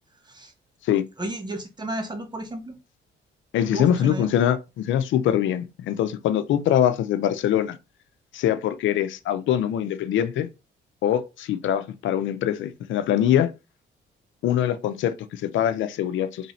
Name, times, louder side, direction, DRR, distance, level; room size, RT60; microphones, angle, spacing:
voice 1, 1.2-2.8 3.7-4.3, right 1 dB, 20° right, 1.0 m, -32 dB
voice 2, 3.5-7.8 8.3-10.5 11.0-13.5 14.4-16.5, left 10 dB, 75° left, 0.5 m, -23 dB
3.1 x 2.7 x 4.1 m
cardioid pair, 90°, 20 cm